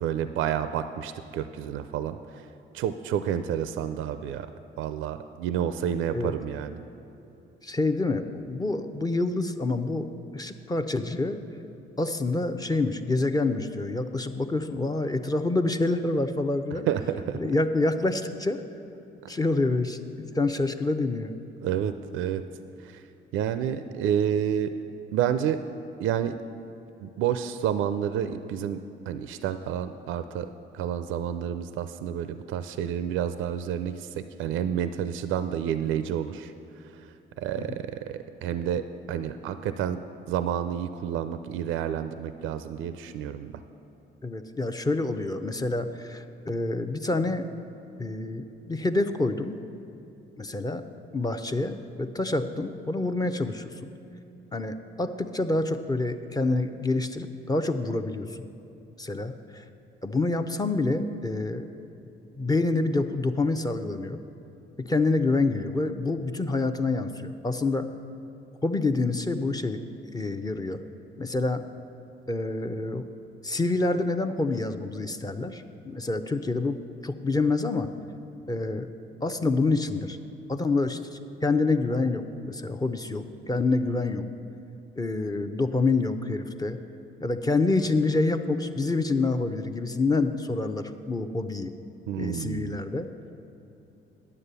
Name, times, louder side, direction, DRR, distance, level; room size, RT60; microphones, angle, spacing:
voice 1, 0.0-2.5 2.7-4.5 4.8-6.8 16.9-17.4 21.6-22.4 22.8-23.0 23.3-24.7 25.1-25.6 26.0-26.4 27.0-28.8 29.1-36.5 36.9-37.1 37.4-40.0 40.3-43.6 92.1-92.8, right 9 dB, 85° right, 10 dB, 0.4 m, -29 dB
voice 2, 7.6-10.1 10.3-11.4 12.0-16.9 17.3-18.6 19.3-21.4 37.6-37.7 44.2-47.5 48.0-49.6 50.4-50.8 51.1-53.9 54.5-58.4 59.0-59.6 60.0-61.7 62.4-64.2 64.8-67.9 68.6-69.8 70.1-70.8 71.2-71.6 72.3-73.1 73.4-77.9 78.5-78.9 79.2-80.2 80.5-84.3 85.0-86.8 87.2-91.7 92.2-93.1, left 3 dB, 20° left, 7 dB, 0.5 m, -27 dB
9.8 x 7.4 x 6.7 m, 2.9 s
cardioid pair, 90°, 20 cm